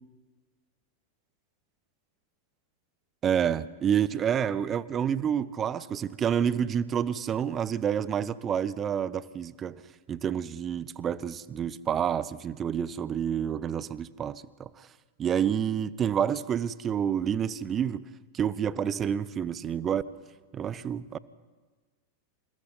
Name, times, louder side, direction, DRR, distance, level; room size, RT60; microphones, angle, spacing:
voice 1, 3.2-9.8 10.1-14.9 15.2-18.0 18.3-20.0 20.5-21.2, right 8 dB, 25° right, 19 dB, 0.8 m, -28 dB
28.0 x 27.0 x 4.2 m, 1.3 s
figure-of-eight pair, 90°, 0 cm